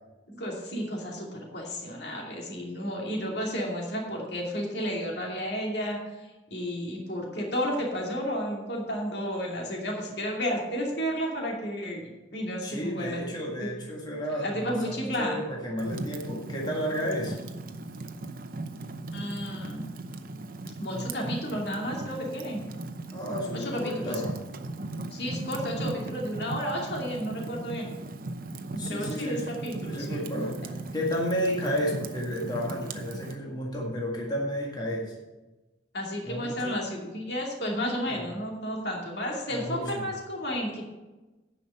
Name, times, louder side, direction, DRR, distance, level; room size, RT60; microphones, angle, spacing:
voice 1, 0.3-13.2 13.6-13.7 14.4-15.4 19.1-19.9 20.8-22.6 23.5-24.2 25.1-27.9 28.7-30.3 35.9-40.9, equal, 60° left, -1 dB, 2.6 m, -32 dB
voice 2, 12.6-17.4 23.1-24.4 28.8-29.5 29.8-35.2 36.2-36.8 38.1-38.2 39.5-40.1, equal, 20° left, -2 dB, 1.8 m, -32 dB
Fire, 15.8-33.4, right 2 dB, 50° right, 0.7 m, -38 dB
10.0 x 5.8 x 7.6 m, 1.1 s
head